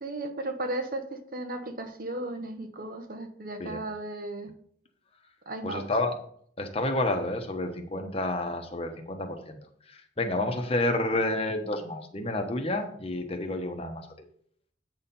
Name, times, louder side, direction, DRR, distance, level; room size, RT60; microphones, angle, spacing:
voice 1, 0.0-4.5 5.5-5.8, right 2 dB, 50° right, 7 dB, 1.0 m, -35 dB
voice 2, 5.6-6.1 6.6-9.6 9.9-14.1, left 2 dB, 30° left, 4 dB, 1.0 m, -30 dB
8.4 x 4.3 x 5.3 m, 0.63 s
head